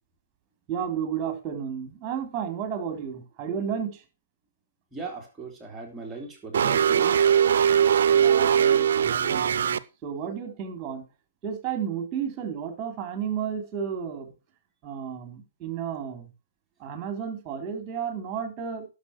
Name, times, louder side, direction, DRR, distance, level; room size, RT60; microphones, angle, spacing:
voice 1, 0.7-4.0 8.1-11.0 11.4-14.3 14.8-16.3 16.8-18.9, right 7 dB, 25° right, 7 dB, 3.6 m, -32 dB
voice 2, 4.9-7.2, right 4 dB, 10° right, -1 dB, 3.2 m, -38 dB
sound 1, 6.5-9.8, right 8 dB, 60° right, 0.7 m, -20 dB
11.5 x 6.8 x 6.2 m, 0.31 s
hypercardioid pair, 135°, 0 cm